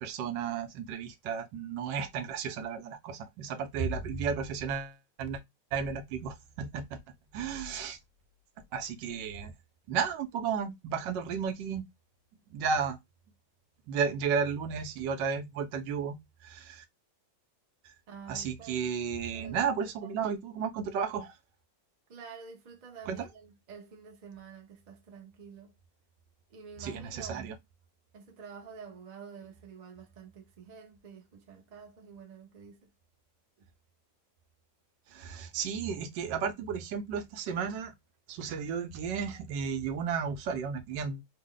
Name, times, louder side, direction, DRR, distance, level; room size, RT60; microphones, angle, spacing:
voice 1, 0.0-5.4 5.7-7.0 7.3-8.0 8.7-9.5 9.9-11.8 12.5-13.0 13.9-16.2 16.4-16.8 17.8-17.9 18.3-21.3 23.1-23.3 26.8-27.5 35.1-37.9 38.3-41.2, right 6 dB, 80° right, 1.3 m, -33 dB
voice 2, 18.1-18.9 19.3-20.1 22.1-25.7 26.5-27.5 28.1-32.9 33.6-33.7, right 6 dB, 45° right, 0.5 m, -49 dB
3.4 x 2.1 x 3.6 m
omnidirectional pair, 1.9 m